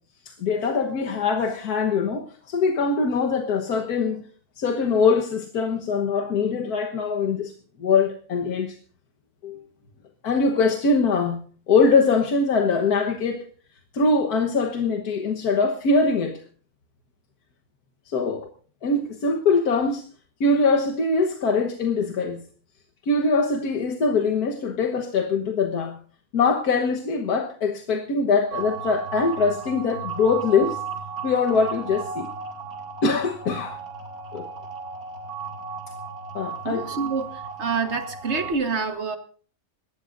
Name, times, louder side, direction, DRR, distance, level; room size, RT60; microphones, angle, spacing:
voice 1, 0.2-4.2 4.6-7.5 7.8-8.8 9.4-9.6 10.2-11.4 11.7-13.5 13.9-16.4 18.1-18.5 18.8-20.1 20.4-22.4 23.1-26.0 26.3-30.8 31.2-32.3 33.0-33.8 34.3-34.4 36.3-37.0, left 4 dB, 90° left, 1.8 m, -22 dB
sound 1, 28.5-38.5, right 5 dB, 70° right, 3.0 m, -35 dB
voice 2, 36.6-37.3 37.6-39.2, right 4 dB, 50° right, 1.8 m, -26 dB
25.0 x 13.5 x 2.6 m
omnidirectional pair, 1.6 m